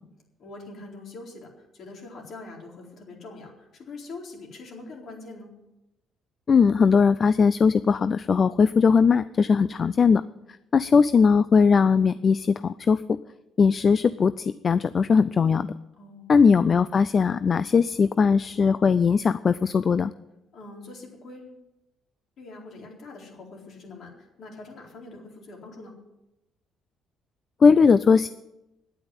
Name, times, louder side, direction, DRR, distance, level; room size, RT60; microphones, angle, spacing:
voice 1, 0.4-5.5 9.4-9.8 16.0-16.3 20.5-21.6 22.4-25.9, left 3 dB, 60° left, 0 dB, 4.1 m, -43 dB
voice 2, 6.5-10.2 10.7-13.2 13.6-15.7 16.3-20.1 27.6-28.3, left 5 dB, 40° left, 15 dB, 0.4 m, -19 dB
10.0 x 8.9 x 9.6 m, 0.92 s
cardioid pair, 105°, 0 cm